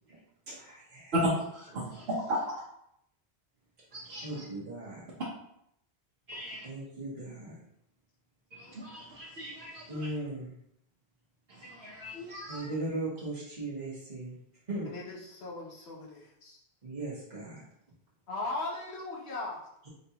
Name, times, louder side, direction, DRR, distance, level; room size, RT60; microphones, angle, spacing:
voice 1, 0.5-1.1 4.2-5.0 6.6-7.6 9.9-10.6 12.5-14.4 14.7-14.9 16.8-17.6, right 2 dB, 40° right, -9 dB, 1.2 m, -38 dB
voice 2, 1.1-2.5 3.9-4.4 6.3-6.7 8.5-10.1 11.5-12.7, equal, 70° right, -6 dB, 1.1 m, -35 dB
voice 3, 14.8-16.6 18.3-19.7, left 2 dB, 80° left, -2 dB, 1.2 m, -38 dB
4.0 x 3.3 x 2.8 m, 0.75 s
omnidirectional pair, 1.1 m